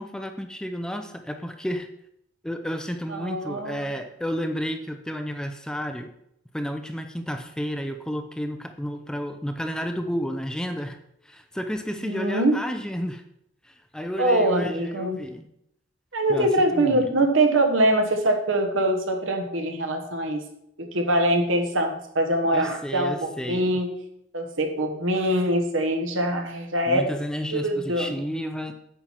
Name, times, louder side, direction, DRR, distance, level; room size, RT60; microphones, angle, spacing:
voice 1, 0.0-1.9 2.4-6.1 6.5-11.0 11.2-13.2 13.6-15.4 16.3-17.1 22.5-23.8 26.9-28.7, equal, 5° left, 7 dB, 0.5 m, -31 dB
voice 2, 3.1-3.9 12.0-12.5 14.2-15.2 16.1-20.4 20.8-23.9 24.3-27.0 27.5-28.1, right 1 dB, 75° right, 4 dB, 1.3 m, -23 dB
8.8 x 5.8 x 4.5 m, 0.75 s
head